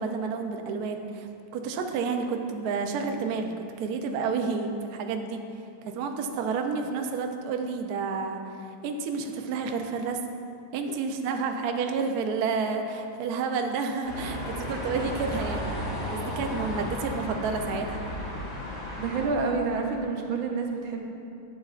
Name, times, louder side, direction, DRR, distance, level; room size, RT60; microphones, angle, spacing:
voice 1, 0.0-5.4 5.8-10.2 10.7-15.7 16.1-18.1, right 5 dB, 90° right, 5 dB, 0.8 m, -30 dB
sound 1, 14.0-19.3, left 1 dB, 40° left, 2.3 m, -34 dB
voice 2, 19.0-21.0, right 4 dB, 70° right, 1 dB, 1.6 m, -28 dB
11.5 x 8.1 x 2.4 m, 2.5 s
omnidirectional pair, 2.4 m